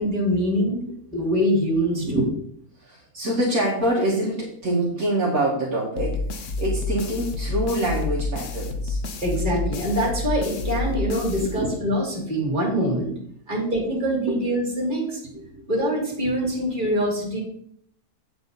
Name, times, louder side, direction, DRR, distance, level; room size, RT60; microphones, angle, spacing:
voice 1, 0.0-0.8 1.1-2.2 9.2-13.1 13.5-15.2 15.7-17.4, equal, 30° right, -3 dB, 3.1 m, -24 dB
voice 2, 2.8-9.0 10.7-11.9 13.5-13.6 14.3-14.4 15.3-15.5, right 1 dB, 55° right, -5 dB, 2.2 m, -26 dB
sound 1, 6.0-12.1, left 2 dB, 55° left, 1.1 m, -29 dB
8.6 x 7.4 x 4.0 m, 0.65 s
omnidirectional pair, 1.7 m